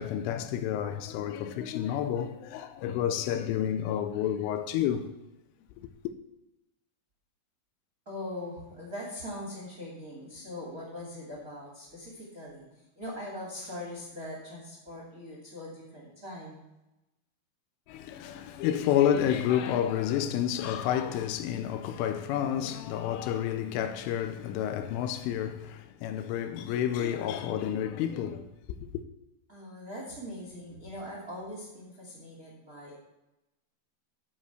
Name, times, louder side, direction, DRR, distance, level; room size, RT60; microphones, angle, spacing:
voice 1, 0.0-5.1 17.9-28.8, left 10 dB, 85° left, 3.1 m, -30 dB
voice 2, 8.1-16.6 29.5-33.0, left 1 dB, 25° right, 1.9 m, -41 dB
10.0 x 5.7 x 8.1 m
omnidirectional pair, 5.7 m